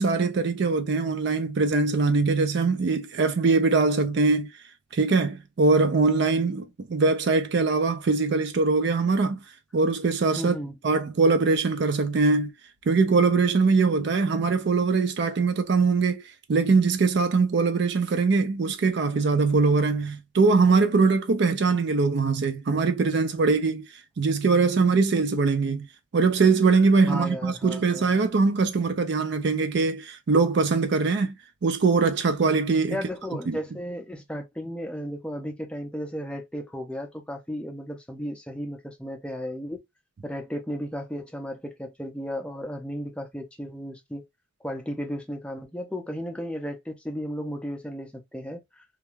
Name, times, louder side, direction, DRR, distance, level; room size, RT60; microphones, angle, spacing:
voice 1, 0.0-4.5 4.9-9.4 9.7-10.6 10.8-12.5 12.9-16.2 16.5-23.9 24.2-25.9 26.1-31.3 31.6-33.0 33.5-33.6, right 4 dB, 55° right, 0.4 m, -22 dB
voice 2, 10.3-10.8 27.1-28.1 32.9-39.8 40.2-44.2 44.6-48.8, equal, 5° left, 0.5 m, -34 dB
2.4 x 2.2 x 3.0 m
head